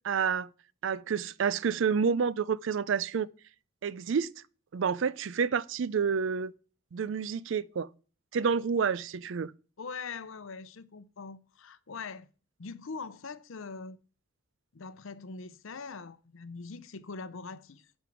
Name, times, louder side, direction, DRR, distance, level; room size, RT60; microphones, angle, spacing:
voice 1, 0.0-0.5 0.8-3.3 3.8-4.3 4.7-6.5 6.9-7.9 8.3-9.5, right 6 dB, 60° right, 0.4 m, -29 dB
voice 2, 9.8-12.3 12.6-14.0 14.7-17.9, left 4 dB, 70° left, 0.7 m, -42 dB
10.5 x 5.4 x 6.0 m
head